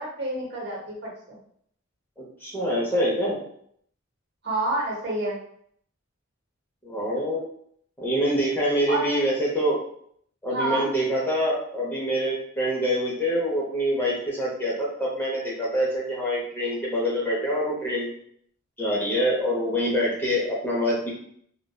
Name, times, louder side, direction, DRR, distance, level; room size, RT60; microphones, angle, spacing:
voice 1, 0.0-1.4 4.4-5.4 8.9-9.2 10.5-10.9, right 1 dB, 55° right, -3 dB, 0.9 m, -29 dB
voice 2, 2.4-3.4 6.8-7.4 8.0-9.8 10.4-18.1 18.8-21.1, equal, 10° left, -5 dB, 0.6 m, -25 dB
2.6 x 2.2 x 2.3 m, 0.66 s
head